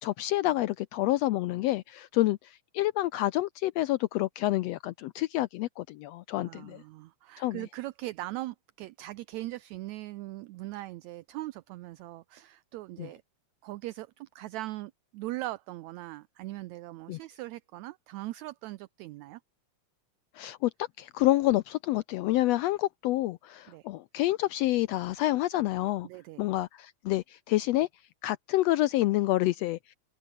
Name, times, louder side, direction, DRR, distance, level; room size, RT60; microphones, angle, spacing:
voice 1, 0.0-6.8 7.4-7.6 13.0-13.1 17.1-17.2 20.3-20.7 21.0-26.1 26.4-27.9 28.2-29.9, left 16 dB, 85° left, 1.4 m, -28 dB
voice 2, 6.4-13.2 13.6-19.4 23.7-23.9 26.0-26.5, right 17 dB, 75° right, 1.8 m, -40 dB
open air
omnidirectional pair, 3.5 m